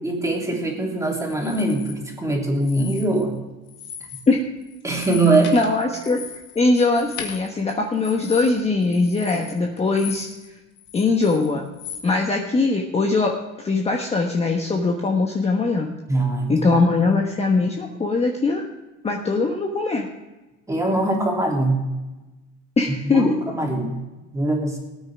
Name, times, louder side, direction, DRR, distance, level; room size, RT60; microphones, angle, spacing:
voice 1, 0.0-3.4 4.8-5.5 16.1-16.5 20.7-21.8 23.1-24.0 24.3-24.8, right 2 dB, 10° right, -1 dB, 3.1 m, -22 dB
sound 1, 1.3-1.9 2.6-3.4 3.7-4.3 4.6-10.5 10.8-12.1, left 8 dB, 60° left, 2.3 m, -38 dB
voice 2, 5.5-6.2 6.5-10.3 10.9-11.7 12.0-13.3 13.6-15.9 16.5-18.6 19.0-20.1 22.8-23.4, left 3 dB, 20° left, 1 dB, 1.2 m, -21 dB
19.0 x 9.2 x 3.6 m, 1.1 s
supercardioid pair, 125°, 34 cm